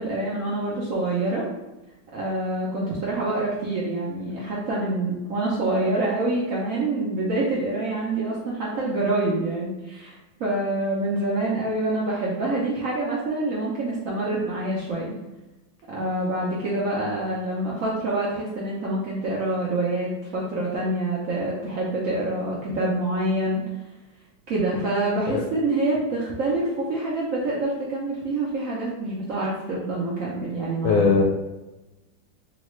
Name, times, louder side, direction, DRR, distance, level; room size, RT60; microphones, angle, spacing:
voice 1, 0.0-1.4 2.1-15.2 15.9-23.6 24.5-31.1, right 2 dB, 70° right, -5 dB, 0.8 m, -26 dB
voice 2, 30.8-31.2, left 4 dB, 85° left, -1 dB, 1.3 m, -19 dB
3.8 x 2.2 x 3.1 m, 1.0 s
omnidirectional pair, 2.0 m